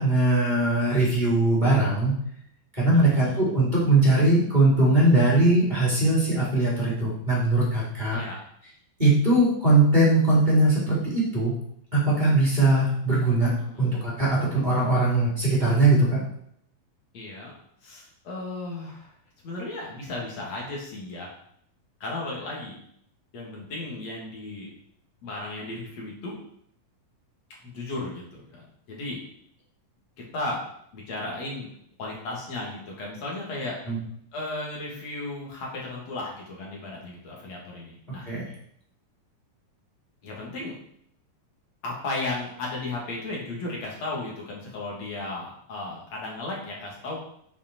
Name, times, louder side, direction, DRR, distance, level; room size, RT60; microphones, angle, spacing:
voice 1, 0.0-2.1 2.8-8.2 9.0-11.5 11.9-13.5 13.8-16.2 33.9-34.0 38.3-38.5, right 2 dB, 10° right, -7 dB, 3.9 m, -21 dB
voice 2, 2.9-3.4 8.1-8.4 13.6-14.0 17.1-17.5 17.8-19.1 19.4-21.3 22.0-22.8 23.3-24.7 25.2-26.4 27.6-29.2 30.2-30.6 30.9-31.7 32.0-33.8 34.3-38.3 40.2-40.7 41.8-47.2, left 2 dB, 50° left, -3 dB, 3.9 m, -35 dB
9.8 x 7.8 x 4.8 m, 0.69 s
omnidirectional pair, 4.2 m